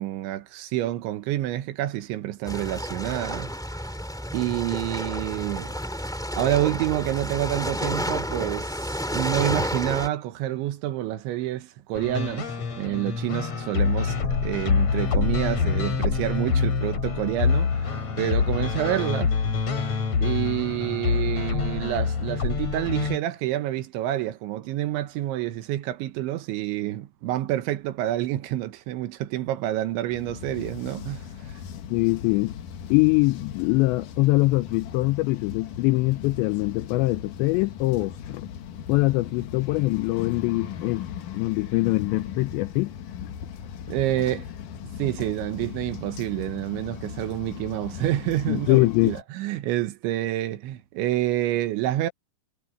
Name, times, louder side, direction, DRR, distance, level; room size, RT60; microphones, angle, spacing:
voice 1, 0.0-3.5 4.3-5.7 6.3-12.5 12.8-19.3 20.2-31.6 43.9-44.5 44.8-52.1, right 14 dB, 75° right, 3.4 m, -28 dB
sound 1, 2.5-10.1, equal, ahead, 2.0 m, -30 dB
sound 2, 11.9-23.2, left 5 dB, 40° left, 3.2 m, -26 dB
sound 3, 30.1-49.2, left 8 dB, 65° left, 2.1 m, -38 dB
voice 2, 31.9-32.5 32.9-38.5 38.9-42.9 48.5-49.2, left 22 dB, 85° left, 2.5 m, -23 dB
omnidirectional pair, 5.6 m